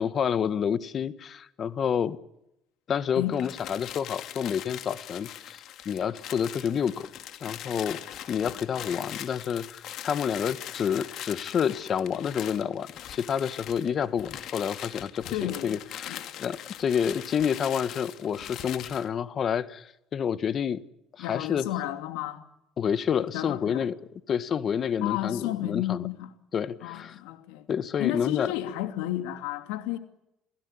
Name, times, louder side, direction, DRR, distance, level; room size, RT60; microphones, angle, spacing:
voice 1, 0.0-2.2 2.9-7.1 7.4-8.0 8.3-20.8 21.2-21.7 22.8-23.9 24.3-26.1 26.5-27.2 27.7-28.5, left 7 dB, 45° left, 1.7 m, -29 dB
sound 1, 3.3-19.1, left 11 dB, 65° left, 2.4 m, -41 dB
voice 2, 15.3-15.8 16.1-16.2 21.2-22.4 23.3-23.8 25.0-26.3 26.8-27.6 28.0-30.0, left 14 dB, 85° left, 2.7 m, -32 dB
28.5 x 17.0 x 9.9 m
supercardioid pair, 100°, 0 cm